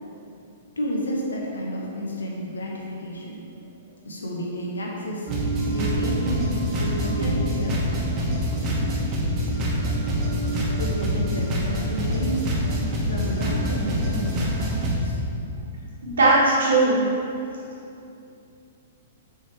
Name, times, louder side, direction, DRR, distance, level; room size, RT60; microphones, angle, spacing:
voice 1, 0.8-3.4 4.0-5.3 5.7-7.8 10.5-12.5 13.0-15.2, equal, 80° left, -2 dB, 0.9 m, -31 dB
sound 1, 5.3-15.0, equal, 30° right, 1.2 m, -25 dB
voice 2, 16.0-17.0, right 2 dB, 75° right, -9 dB, 1.3 m, -18 dB
6.3 x 3.6 x 4.3 m, 2.6 s
figure-of-eight pair, 110°, 0 cm